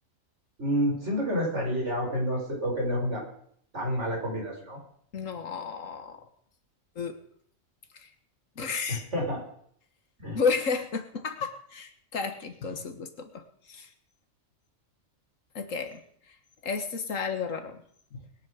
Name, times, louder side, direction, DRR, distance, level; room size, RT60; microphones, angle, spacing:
voice 1, 0.6-3.2 3.7-4.8 8.9-9.4 10.2-10.4, equal, 60° right, -2 dB, 6.1 m, -29 dB
voice 2, 5.1-6.2 7.0-7.2 8.0-8.1 8.6-9.0 10.3-13.9 15.6-16.0 16.3-16.4 16.6-17.8 18.1-18.2, left 5 dB, 75° left, 7 dB, 1.8 m, -32 dB
21.0 x 10.5 x 5.1 m, 0.64 s
omnidirectional pair, 1.4 m